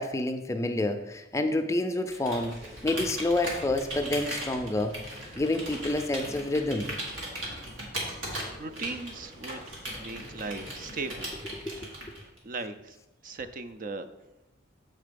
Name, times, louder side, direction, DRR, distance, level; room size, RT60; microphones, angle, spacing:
voice 1, 0.0-2.6 2.8-5.0 5.4-6.9 11.6-11.9, left 2 dB, 15° left, 6 dB, 0.4 m, -28 dB
Computer keyboard, 2.1-12.4, right 1 dB, 80° right, 2.0 m, -38 dB
voice 2, 8.6-11.3 11.9-12.1 12.4-13.0 13.2-14.1, right 3 dB, 45° right, 10 dB, 0.4 m, -38 dB
7.6 x 4.0 x 5.1 m, 0.95 s
head